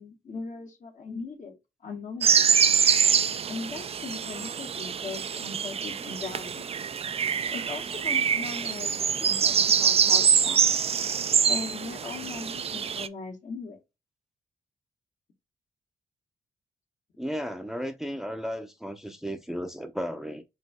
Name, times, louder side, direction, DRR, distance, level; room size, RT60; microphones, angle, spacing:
voice 1, 0.0-1.5 1.8-2.5 3.5-6.7 7.5-10.6 11.5-13.8, left 4 dB, 60° left, 1.9 m, -39 dB
sound 1, 2.2-13.1, right 7 dB, 45° right, 0.4 m, -25 dB
voice 2, 17.2-20.4, equal, ahead, 0.7 m, -34 dB
5.3 x 2.7 x 3.6 m
supercardioid pair, 55°, 15 cm